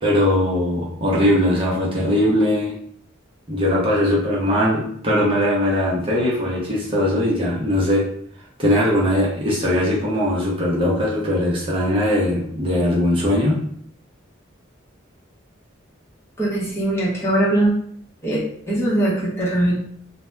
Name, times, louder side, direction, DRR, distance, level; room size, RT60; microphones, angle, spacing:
voice 1, 0.0-2.7 3.5-8.0 8.6-13.5, left 1 dB, 25° right, -5 dB, 0.7 m, -20 dB
voice 2, 16.4-17.7 18.2-19.8, right 1 dB, 15° left, -7 dB, 0.8 m, -21 dB
2.7 x 2.1 x 3.3 m, 0.64 s
head